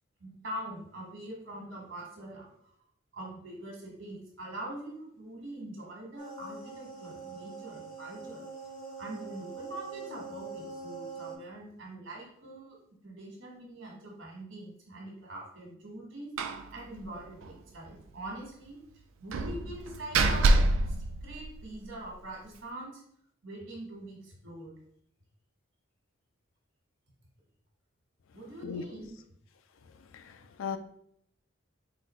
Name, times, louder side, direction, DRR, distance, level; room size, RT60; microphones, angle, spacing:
voice 1, 0.2-2.7 3.1-8.4 9.0-18.8 19.2-23.0 23.4-24.7 28.3-29.1, right 1 dB, 70° right, -2 dB, 1.4 m, -43 dB
sound 1, 6.2-11.4, right 4 dB, 45° left, 0.7 m, -43 dB
Slam, 16.4-16.7 17.0-17.1 17.4-17.5 19.3-21.9, right 2 dB, 85° right, 0.4 m, -26 dB
voice 2, 30.1-30.8, left 6 dB, 80° left, 9 dB, 0.4 m, -37 dB
3.9 x 2.5 x 4.2 m, 0.69 s
head